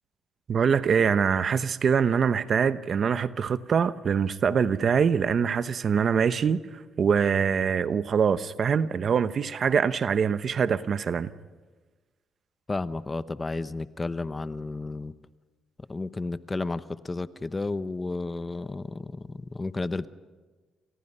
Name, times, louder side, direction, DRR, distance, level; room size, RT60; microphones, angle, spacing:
voice 1, 0.5-6.6 7.0-11.3, right 6 dB, 50° right, 0.9 m, -24 dB
voice 2, 12.7-15.1 15.9-20.1, left 3 dB, 25° left, 0.9 m, -32 dB
29.5 x 26.0 x 5.5 m
cardioid pair, 90°, 0 cm